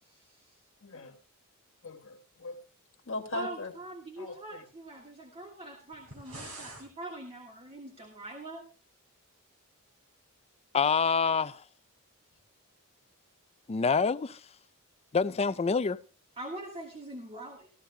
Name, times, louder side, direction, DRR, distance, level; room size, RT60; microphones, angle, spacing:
voice 1, 0.0-0.6 3.3-8.7 16.4-17.7, right 2 dB, 25° right, 1.6 m, -43 dB
voice 2, 0.8-1.2 1.8-2.6 3.1-3.7 4.2-4.6, left 2 dB, 60° left, 1.4 m, -39 dB
sound 1, 5.9-6.9, right 2 dB, 90° right, 4.0 m, -45 dB
voice 3, 10.7-11.6 13.7-14.4 15.1-16.0, left 5 dB, 30° left, 0.4 m, -26 dB
15.0 x 14.0 x 2.2 m
head